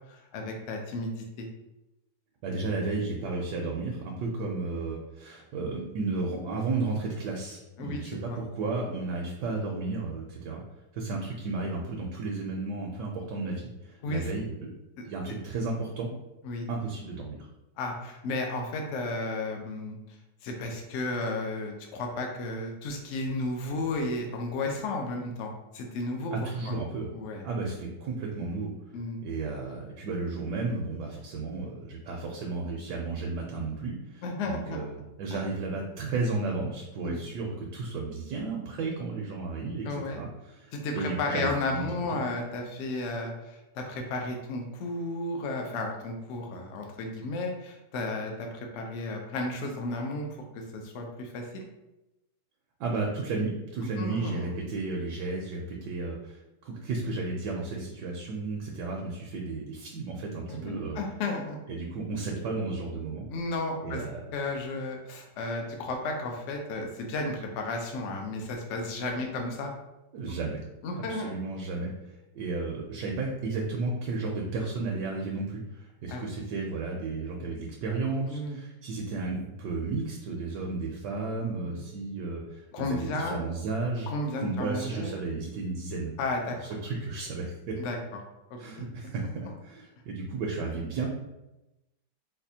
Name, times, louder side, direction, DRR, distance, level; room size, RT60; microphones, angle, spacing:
voice 1, 0.1-1.5 7.8-8.4 14.0-14.3 16.4-16.7 17.8-20.0 20.4-26.7 27.1-27.5 28.9-29.2 34.2-34.8 35.3-35.4 37.0-37.2 39.8-40.2 40.7-50.3 50.5-51.6 54.0-54.5 60.5-61.6 63.3-64.0 64.3-69.7 70.8-71.3 76.1-76.2 78.3-78.6 81.5-81.9 82.7-83.4 84.1-85.1 86.2-86.6 87.8-88.0 88.5-88.9, left 2 dB, 70° left, 2 dB, 0.7 m, -33 dB
voice 2, 2.4-10.6 10.9-14.5 15.0-16.1 16.7-17.5 26.3-27.1 27.4-28.7 29.2-41.9 52.8-56.4 56.6-61.0 61.7-63.3 63.8-64.2 70.1-70.6 71.1-71.9 72.3-84.1 84.4-86.1 86.8-87.8 88.6-91.1, right 3 dB, 75° right, 0 dB, 1.2 m, -33 dB
4.1 x 2.3 x 2.7 m, 0.96 s
omnidirectional pair, 1.9 m